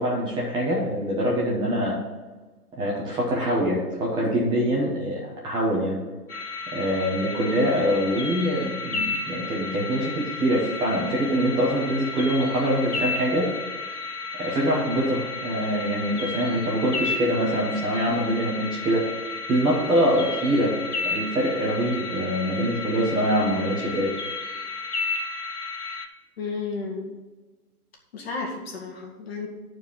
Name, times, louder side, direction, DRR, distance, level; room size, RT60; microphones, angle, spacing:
voice 1, 0.0-2.0 2.7-6.0 6.7-13.5 14.4-19.0 19.5-20.8 21.0-24.1, equal, 10° right, -5 dB, 1.1 m, -24 dB
sound 1, 6.3-26.0, left 4 dB, 80° left, 1.6 m, -33 dB
voice 2, 26.4-27.1 28.1-29.5, left 4 dB, 40° left, 1 dB, 2.1 m, -32 dB
10.5 x 4.6 x 7.1 m, 1.3 s
figure-of-eight pair, 135°, 45 cm